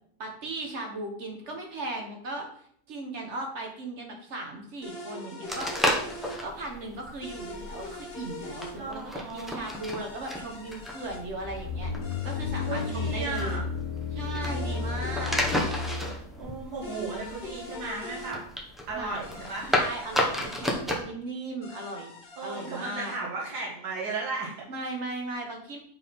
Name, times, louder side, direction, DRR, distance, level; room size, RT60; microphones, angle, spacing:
voice 1, 0.2-2.5 2.9-5.7 6.4-11.9 12.2-13.6 14.1-15.4 18.9-19.2 19.7-22.1 22.4-23.1 24.7-25.8, right 2 dB, 45° right, 2 dB, 1.2 m, -37 dB
sound 1, 4.8-6.4 7.2-8.8 9.6-11.2 12.0-13.6 14.4-16.0 16.8-18.3 19.2-20.8 21.6-23.2, left 1 dB, 70° left, 1.9 m, -43 dB
sound 2, 5.5-21.0, left 1 dB, ahead, 0.4 m, -33 dB
voice 2, 8.7-9.6 12.6-13.6 14.6-15.0 16.4-18.4 18.9-19.7 22.4-24.7, right 3 dB, 70° right, -3 dB, 1.8 m, -35 dB
sound 3, 11.1-16.2, left 5 dB, 40° left, 0.7 m, -33 dB
7.2 x 3.6 x 4.3 m, 0.64 s
omnidirectional pair, 1.9 m